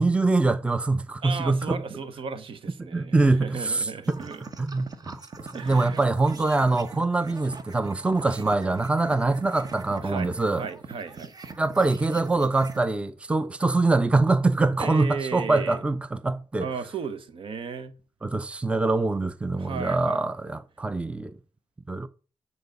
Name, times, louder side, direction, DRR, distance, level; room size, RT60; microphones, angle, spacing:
voice 1, 0.0-1.8 2.8-4.2 4.6-10.6 11.6-16.7 18.2-21.4 21.9-22.1, right 3 dB, 10° right, 0.5 m, -24 dB
voice 2, 1.2-4.4 4.8-4.9 5.5-6.0 10.0-11.3 14.8-15.8 16.6-17.9 19.6-20.3, right 6 dB, 70° right, 1.1 m, -35 dB
sound 1, 4.0-12.9, right 4 dB, 40° right, 1.0 m, -42 dB
9.1 x 4.1 x 5.2 m
cardioid pair, 95°, 9 cm